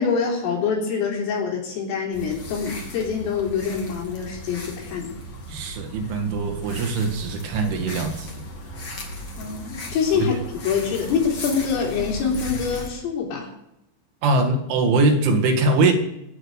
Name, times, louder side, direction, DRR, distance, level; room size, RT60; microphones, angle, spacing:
voice 1, 0.0-5.1 9.4-10.4 10.6-13.5, left 6 dB, 85° left, -1 dB, 6.2 m, -25 dB
sound 1, 2.1-12.9, equal, 35° left, 2.2 m, -36 dB
voice 2, 5.5-8.4 10.1-10.3 14.2-15.9, right 3 dB, 75° right, 5 dB, 4.3 m, -22 dB
21.0 x 9.2 x 6.6 m, 0.82 s
omnidirectional pair, 5.7 m